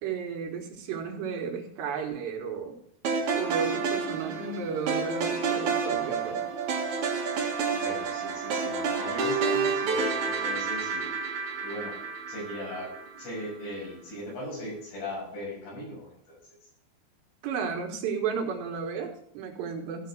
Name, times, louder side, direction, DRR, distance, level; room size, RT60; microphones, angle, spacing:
voice 1, 0.0-2.8 3.3-6.4 17.4-20.1, right 6 dB, 75° right, 2 dB, 3.7 m, -33 dB
sound 1, 3.0-13.3, right 5 dB, 55° right, 2.4 m, -29 dB
voice 2, 7.7-11.2 11.6-12.0 12.3-16.7, left 1 dB, 70° left, -3 dB, 8.1 m, -39 dB
15.5 x 6.3 x 4.7 m, 0.67 s
omnidirectional pair, 5.1 m